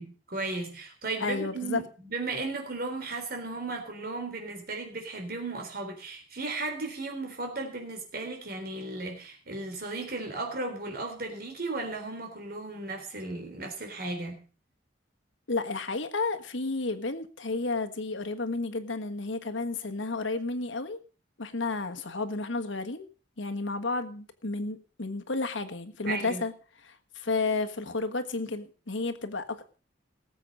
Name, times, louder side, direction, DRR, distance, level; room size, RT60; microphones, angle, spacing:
voice 1, 0.0-14.4 26.1-26.4, right 3 dB, 50° right, 3.8 m, -35 dB
voice 2, 1.2-1.8 15.5-21.0 21.4-23.1 23.4-26.5 26.9-29.8, left 3 dB, 85° left, 1.5 m, -32 dB
18.5 x 7.7 x 5.4 m
head